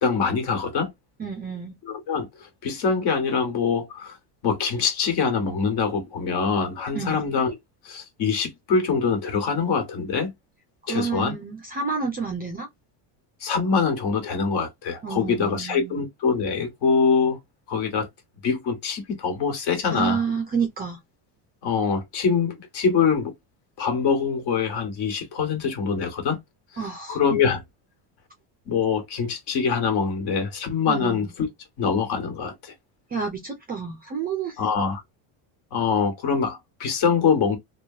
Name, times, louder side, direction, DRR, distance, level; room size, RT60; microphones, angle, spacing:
voice 1, 0.0-0.9 1.8-4.2 4.4-7.6 7.8-10.3 10.9-11.4 13.4-17.4 17.7-18.1 18.4-20.2 21.6-23.3 23.8-26.4 27.1-27.6 28.7-31.5 31.8-32.7 34.6-35.0 35.7-37.6, left 5 dB, 60° left, 1.5 m, -24 dB
voice 2, 1.2-1.8 6.9-7.2 10.8-12.7 15.0-16.0 19.9-21.0 26.8-27.2 30.9-31.3 33.1-34.6, right 5 dB, 25° right, 0.3 m, -29 dB
3.0 x 2.2 x 2.7 m
cardioid pair, 165°, 47 cm